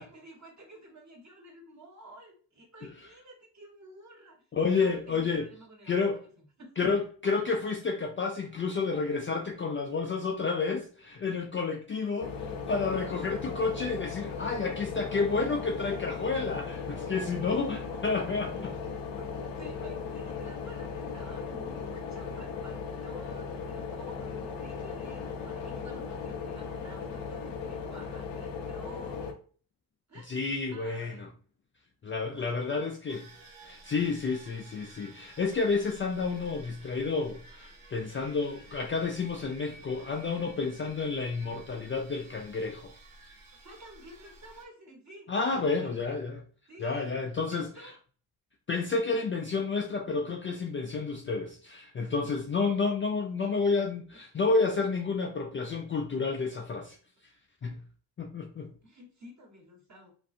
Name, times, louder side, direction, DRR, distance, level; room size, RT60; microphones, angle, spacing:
voice 1, 0.0-4.4 4.8-7.0 12.2-12.3 17.3-17.5 17.9-18.1 18.5-18.6 19.1-29.2 30.1-30.4 30.7-31.3 32.3-32.6 43.6-46.0 46.7-47.2 47.5-47.9 53.2-53.5 54.1-54.2 58.6-60.1, right 1 dB, 35° right, 1.4 m, -51 dB
voice 2, 4.5-5.5 5.8-6.2 6.8-12.4 12.7-18.7 30.3-31.3 32.0-33.3 33.6-42.9 45.3-46.4 46.8-47.9 48.7-57.0 57.6-57.8 58.2-58.7, left 4 dB, 30° left, 0.4 m, -30 dB
sound 1, 12.2-29.3, left 5 dB, 70° left, 0.7 m, -37 dB
sound 2, 33.1-44.6, right 2 dB, 85° right, 0.8 m, -53 dB
2.5 x 2.3 x 2.6 m
supercardioid pair, 50°, 47 cm